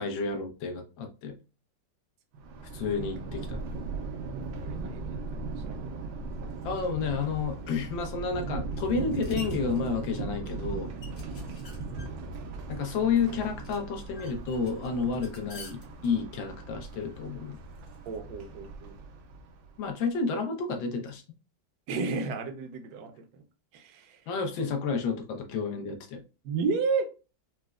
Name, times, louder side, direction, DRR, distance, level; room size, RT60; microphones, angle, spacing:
voice 1, 0.0-1.4 2.7-3.6 6.6-10.9 12.7-17.6 19.8-21.2 24.3-26.2, left 5 dB, 75° left, 4 dB, 1.4 m, -30 dB
Thunder, 2.4-19.8, right 3 dB, 80° right, 1.4 m, -38 dB
voice 2, 4.6-5.8 18.1-18.9 21.9-23.4 23.7-24.2 24.6-24.7 26.4-27.1, right 4 dB, 65° right, 5 dB, 1.0 m, -32 dB
sound 1, 6.3-18.2, left 2 dB, 45° left, 0.8 m, -52 dB
4.1 x 2.1 x 2.3 m, 0.33 s
omnidirectional pair, 2.2 m